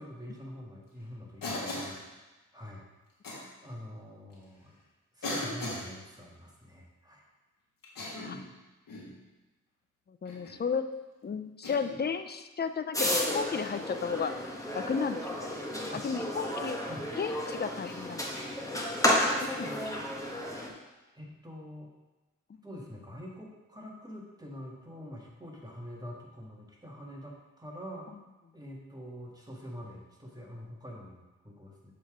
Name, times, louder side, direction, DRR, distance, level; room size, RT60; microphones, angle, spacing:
voice 1, 0.0-2.8 3.6-4.8 5.1-7.2 15.9-16.1 16.9-17.1 19.7-20.2 21.1-21.9 22.6-28.1 28.5-31.9, equal, 10° right, -2 dB, 1.7 m, -45 dB
Cough, 1.4-2.0 3.2-3.4 4.3-4.4 5.2-5.9 7.8-8.4 8.9-9.1 10.2-10.6 11.6-12.0 13.5-13.7 15.9-16.1 17.8-18.0, left 2 dB, 90° left, 1.6 m, -38 dB
voice 2, 10.1-10.9 11.2-14.4 14.7-15.6 15.9-16.8 17.2-18.9 19.4-20.0 22.5-22.6, left 5 dB, 30° left, 10 dB, 0.5 m, -34 dB
sound 1, 12.9-20.7, left 1 dB, 10° left, 1.2 m, -32 dB
6.9 x 3.8 x 4.9 m, 1.1 s
cardioid pair, 50°, 32 cm